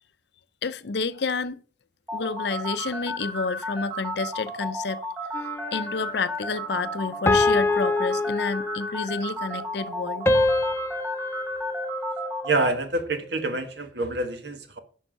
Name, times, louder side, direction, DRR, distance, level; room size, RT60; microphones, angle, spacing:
voice 1, 0.6-1.6 2.1-5.0 5.7-10.3, left 4 dB, 65° left, 0.6 m, -29 dB
sound 1, 2.1-12.7, equal, 15° right, 2.8 m, -33 dB
sound 2, 5.3-6.0 7.3-9.1 10.3-12.7, left 2 dB, 15° left, 0.4 m, -25 dB
voice 2, 12.4-14.8, right 2 dB, 70° right, 1.5 m, -27 dB
11.0 x 5.5 x 5.2 m
head